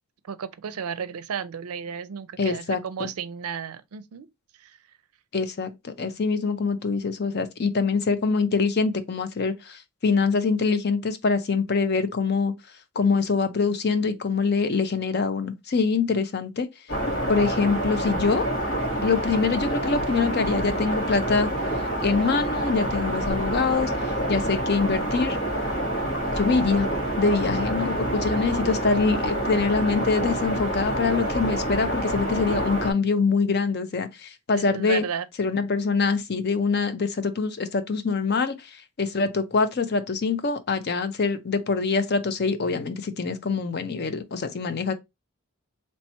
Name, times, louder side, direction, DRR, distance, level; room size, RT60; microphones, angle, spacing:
voice 1, 0.2-4.3 4.6-4.8 34.6-35.3, right 7 dB, 80° right, 0.4 m, -33 dB
voice 2, 2.4-3.1 5.3-12.5 13.0-16.7 17.3-18.5 19.0-21.5 22.0-25.4 26.3-26.9 27.2-35.0 35.4-44.9, left 4 dB, 45° left, 0.5 m, -24 dB
sound 1, 16.9-32.9, right 1 dB, 65° left, 1.9 m, -27 dB
3.2 x 2.9 x 4.4 m
head